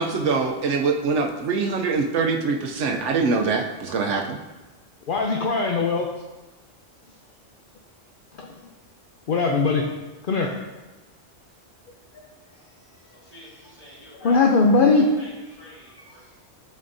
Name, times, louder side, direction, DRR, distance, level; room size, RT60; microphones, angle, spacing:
voice 1, 0.0-4.4, right 4 dB, 75° right, 3 dB, 0.9 m, -23 dB
voice 2, 5.1-6.1 8.4-8.5 9.3-9.8 10.3-10.5 14.2-15.1, left 4 dB, 55° left, 1 dB, 0.7 m, -20 dB
voice 3, 13.2-16.2, equal, 30° left, -8 dB, 2.5 m, -47 dB
10.5 x 4.3 x 2.6 m, 1.1 s
omnidirectional pair, 1.3 m